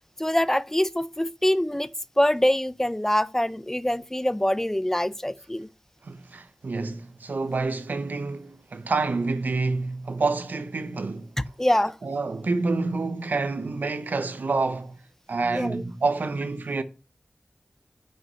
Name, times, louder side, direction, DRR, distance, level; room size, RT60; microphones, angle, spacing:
voice 1, 0.2-1.9 2.2-5.7 11.6-12.0 15.5-15.8, left 1 dB, 15° left, 0.5 m, -24 dB
voice 2, 6.0-11.3 12.0-15.0 15.3-16.8, right 3 dB, 80° right, 0.8 m, -28 dB
5.5 x 5.5 x 6.2 m
wide cardioid pair, 50°, 3 cm